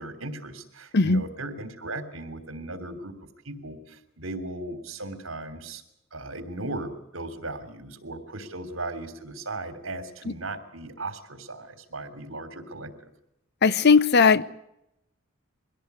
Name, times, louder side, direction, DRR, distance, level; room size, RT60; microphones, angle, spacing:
voice 1, 0.0-3.2 3.4-5.8 6.1-13.1, right 2 dB, 70° right, 10 dB, 3.2 m, -37 dB
voice 2, 13.6-14.4, left 5 dB, 55° left, 16 dB, 0.8 m, -18 dB
23.5 x 17.5 x 8.2 m, 0.84 s
head